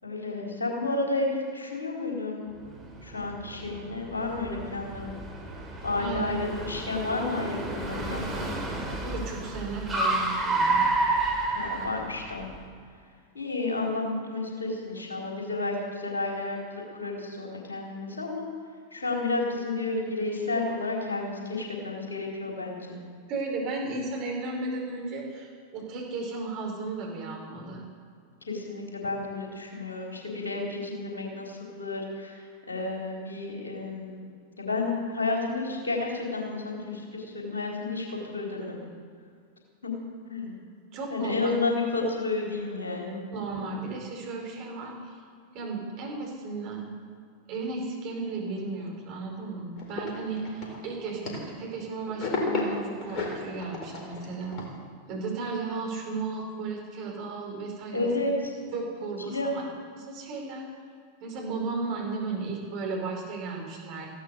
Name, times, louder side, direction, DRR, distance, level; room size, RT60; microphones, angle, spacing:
voice 1, 0.0-2.4 3.0-5.2 5.8-8.5 11.5-12.5 13.3-18.5 18.9-23.0 28.5-34.3 34.6-38.8 39.8-39.9 40.3-40.6 41.1-43.2 57.9-58.5 59.3-59.6, left 3 dB, 75° left, -1 dB, 4.2 m, -31 dB
Car, 2.6-12.5, right 2 dB, 15° right, 4.5 m, -30 dB
voice 2, 9.0-10.9 23.3-27.8 40.9-41.5 43.3-45.2 45.5-46.9 47.5-54.6 55.1-58.1 58.7-59.6 60.0-60.7 61.2-64.1, right 3 dB, 45° right, -1 dB, 5.0 m, -34 dB
sound 1, 49.8-51.8 52.1-54.7, left 3 dB, 35° left, 4.3 m, -33 dB
16.0 x 12.0 x 6.7 m, 2.2 s
figure-of-eight pair, 90°, 0 cm